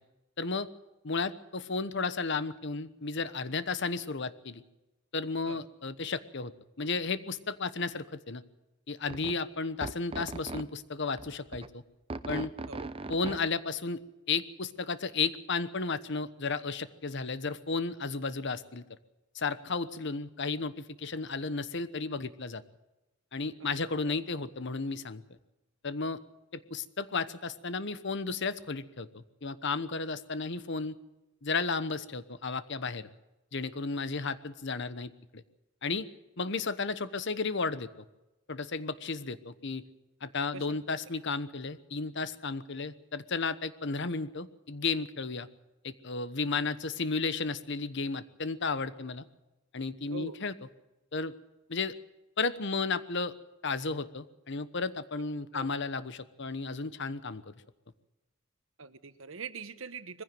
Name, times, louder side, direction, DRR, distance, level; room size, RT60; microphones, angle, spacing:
voice 1, 0.4-0.7 1.0-4.6 5.1-6.5 6.8-8.4 8.9-11.8 12.3-12.5 13.1-14.0 14.3-18.8 19.3-22.6 23.3-25.2 25.8-26.2 26.5-30.9 31.4-33.1 33.5-35.4 35.8-36.1 36.4-37.9 38.5-39.9 40.2-45.5 45.8-49.2 49.7-50.5 51.1-51.3 51.7-52.0 52.4-53.3 53.6-57.5, left 4 dB, 60° left, 14 dB, 1.1 m, -33 dB
sound 1, 9.1-9.3 9.8-10.6 11.2-11.7 12.1-13.5, right 2 dB, 30° right, 0.8 m, -38 dB
voice 2, 58.8-60.2, right 4 dB, 75° right, 12 dB, 1.2 m, -43 dB
21.5 x 15.5 x 7.7 m, 1.0 s
head